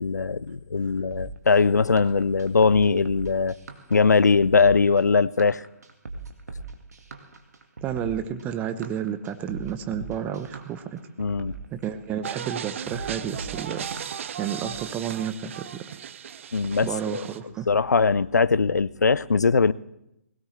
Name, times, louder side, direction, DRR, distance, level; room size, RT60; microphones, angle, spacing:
voice 1, 0.0-3.6 3.9-5.6 11.2-11.5 16.5-17.2 17.7-19.7, left 4 dB, 80° left, 0.4 m, -21 dB
sound 1, 1.1-14.8, right 3 dB, 65° right, 1.7 m, -40 dB
voice 2, 7.8-11.0 11.7-14.0 14.4-15.8 16.8-17.7, right 9 dB, 15° right, 0.8 m, -31 dB
sound 2, 12.2-17.4, right 8 dB, 45° right, 0.6 m, -36 dB
20.0 x 17.5 x 3.2 m
figure-of-eight pair, 135°, 9 cm